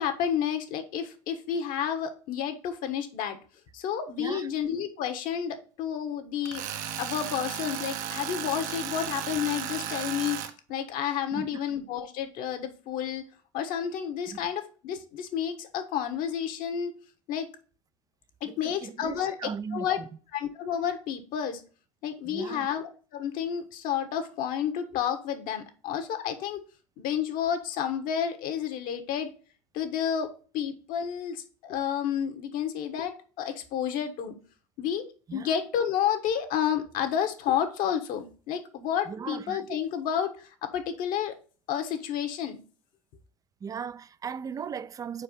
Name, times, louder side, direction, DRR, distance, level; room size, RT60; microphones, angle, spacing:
voice 1, 0.0-3.4 3.7-6.6 7.0-10.4 10.7-13.2 13.5-16.9 17.3-17.5 18.4-19.4 19.7-20.0 20.3-21.6 22.0-26.6 27.0-29.3 29.7-34.4 34.8-35.1 35.3-41.3 41.7-42.6, left 9 dB, 55° left, 1.2 m, -30 dB
Tools, 6.5-10.5, right 9 dB, 55° right, 0.8 m, -35 dB
voice 2, 11.3-11.8 14.3-14.4 18.4-20.1 22.2-22.7 35.3-35.5 39.1-39.8 43.6-45.2, right 6 dB, 20° right, 0.4 m, -38 dB
4.8 x 4.5 x 5.3 m
hypercardioid pair, 90°, 17 cm